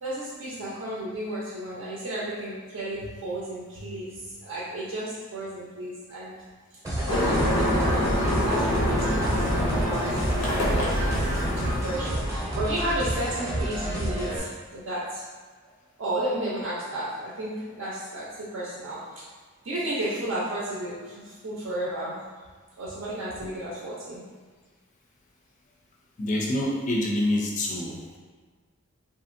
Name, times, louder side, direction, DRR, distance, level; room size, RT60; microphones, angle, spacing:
voice 1, 0.0-6.4 7.0-8.1 8.4-10.2 10.7-11.0 11.8-15.2 16.0-19.0 19.6-22.2 22.8-24.2, right 1 dB, 60° right, -7 dB, 0.5 m, -33 dB
sound 1, 6.8-14.4, right 1 dB, 15° right, 0.6 m, -30 dB
sound 2, 7.1-12.3, left 1 dB, 80° left, 0.6 m, -26 dB
voice 2, 26.2-28.2, left 1 dB, 35° left, -1 dB, 0.3 m, -26 dB
2.9 x 2.5 x 2.5 m, 1.5 s
head